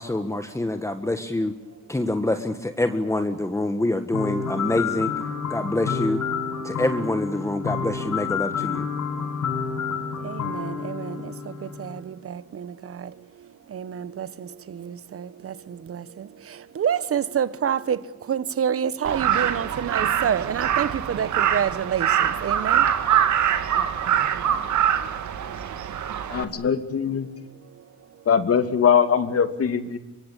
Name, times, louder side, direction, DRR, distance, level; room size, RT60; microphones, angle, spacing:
voice 1, 0.0-1.5 1.9-5.1 5.5-6.2 6.6-8.8, left 1 dB, 10° left, 1.7 m, -26 dB
sound 1, 4.1-12.0, left 6 dB, 70° left, 7.1 m, -29 dB
voice 2, 10.2-11.3 11.8-13.1 13.7-15.5 15.9-16.0 16.7-18.0 18.3-22.8, right 8 dB, 50° right, 1.3 m, -28 dB
Crow, 19.0-26.4, right 9 dB, 70° right, 2.3 m, -23 dB
voice 3, 26.3-27.3 28.3-30.0, left 7 dB, 50° left, 2.6 m, -21 dB
24.0 x 23.5 x 8.5 m
cardioid pair, 90°, 30 cm